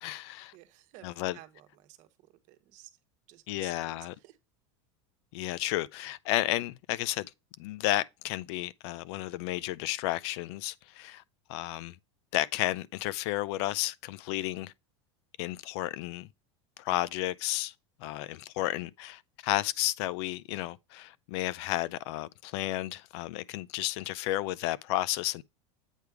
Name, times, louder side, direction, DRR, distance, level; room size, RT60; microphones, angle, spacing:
voice 1, 0.0-0.5 1.0-1.4 3.5-4.1 5.3-7.3 7.6-11.2 11.5-12.0 12.3-14.7 15.4-16.3 16.8-17.7 18.0-25.4, left 16 dB, 65° left, 0.5 m, -32 dB
voice 2, 0.5-2.9 3.3-4.4, right 15 dB, 55° right, 1.1 m, -54 dB
8.3 x 3.4 x 4.6 m
hypercardioid pair, 105°, 15 cm